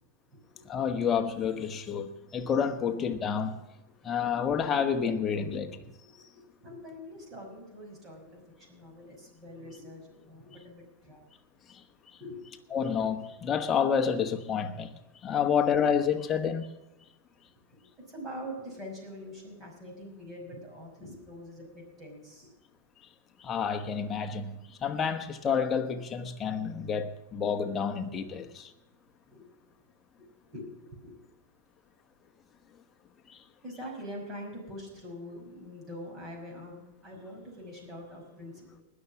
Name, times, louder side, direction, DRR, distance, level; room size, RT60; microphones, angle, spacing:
voice 1, 0.7-3.6 4.0-5.8 11.7-11.8 12.7-14.9 15.2-16.7 23.4-24.5 24.8-28.7 33.3-33.4, left 7 dB, 20° left, 1.1 m, -29 dB
voice 2, 6.2-11.2 12.2-12.8 18.1-22.5 28.2-28.3 29.3-29.5 29.7-29.8 30.2-31.2 33.6-38.8, equal, 20° right, 5.7 m, -44 dB
20.5 x 6.9 x 6.0 m
supercardioid pair, 145°, 0 cm